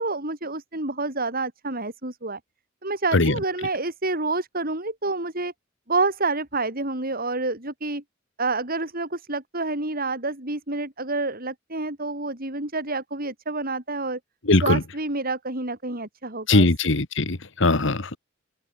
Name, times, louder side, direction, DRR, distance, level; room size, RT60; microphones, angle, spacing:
voice 1, 0.0-2.4 2.8-5.5 5.9-8.0 8.4-14.2 14.6-16.7, right 3 dB, 50° right, 7.3 m, -28 dB
voice 2, 14.5-14.8 16.5-18.2, left 2 dB, 65° left, 1.7 m, -20 dB
open air
head